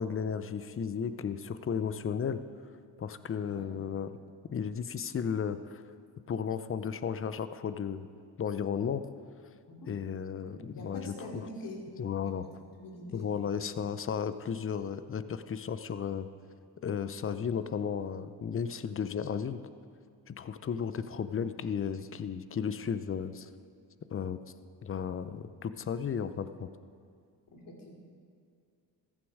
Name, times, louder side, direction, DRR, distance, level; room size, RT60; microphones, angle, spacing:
voice 1, 0.0-2.4 3.0-4.1 4.4-5.8 6.3-8.1 8.4-9.0 9.9-11.1 12.0-12.4 13.1-16.3 16.8-19.6 20.3-23.5 24.1-24.4 24.8-26.7, left 7 dB, 35° left, 13 dB, 0.7 m, -34 dB
voice 2, 3.4-3.7 9.7-10.0 10.3-13.3 27.5-27.9, left 1 dB, 55° left, 0 dB, 3.0 m, -45 dB
14.5 x 9.8 x 4.9 m, 2.3 s
cardioid pair, 75°, 39 cm